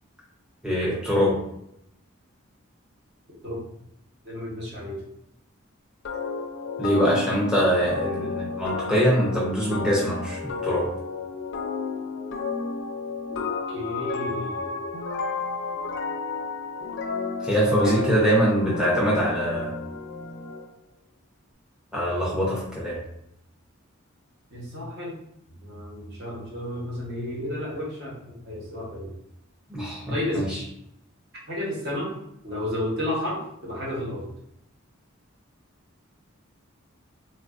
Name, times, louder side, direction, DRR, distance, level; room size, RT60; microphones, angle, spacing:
voice 1, 0.6-1.4 6.8-10.9 17.4-19.7 21.9-23.0 29.7-30.6, equal, 5° right, -6 dB, 0.5 m, -23 dB
voice 2, 4.2-5.0 13.3-14.7 17.8-18.1 24.5-25.1 25.6-28.2 28.4-29.1 30.1-30.6 31.5-32.1 32.4-34.3, left 1 dB, 55° right, -4 dB, 1.0 m, -32 dB
sound 1, 6.1-20.7, left 4 dB, 60° left, 0.4 m, -32 dB
3.2 x 2.3 x 2.4 m, 0.79 s
head